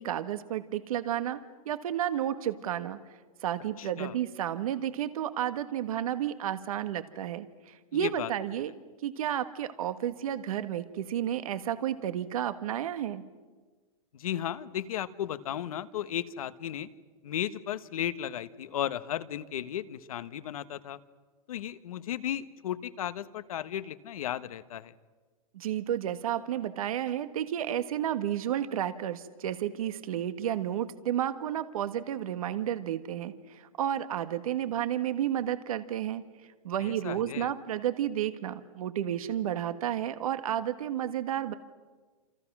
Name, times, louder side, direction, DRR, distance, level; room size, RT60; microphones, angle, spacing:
voice 1, 0.0-1.4 1.6-3.0 3.4-8.7 9.0-13.2 25.5-36.2 36.6-41.5, right 11 dB, 75° right, 10 dB, 1.5 m, -31 dB
voice 2, 3.8-4.1 7.9-8.3 14.1-16.9 17.2-21.0 21.5-24.9 36.8-37.5, left 11 dB, 80° left, 13 dB, 1.3 m, -35 dB
28.0 x 27.5 x 6.1 m, 1.4 s
supercardioid pair, 155°, 18 cm